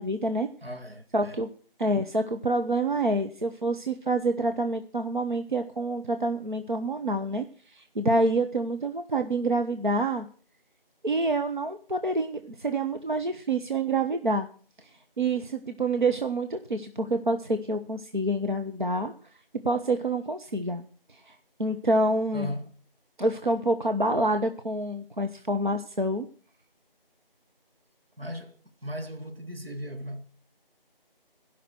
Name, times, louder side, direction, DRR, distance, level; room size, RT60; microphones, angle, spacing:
voice 1, 0.0-0.5 1.1-1.5 1.8-10.3 11.0-14.5 14.8-14.9 15.2-19.1 19.6-21.3 21.6-22.5 23.2-26.3, right 2 dB, 55° right, 1.0 m, -27 dB
voice 2, 0.6-1.4 22.3-22.7 28.2-30.3, equal, 80° right, 2.3 m, -37 dB
16.0 x 5.9 x 7.8 m
figure-of-eight pair, 175°, 29 cm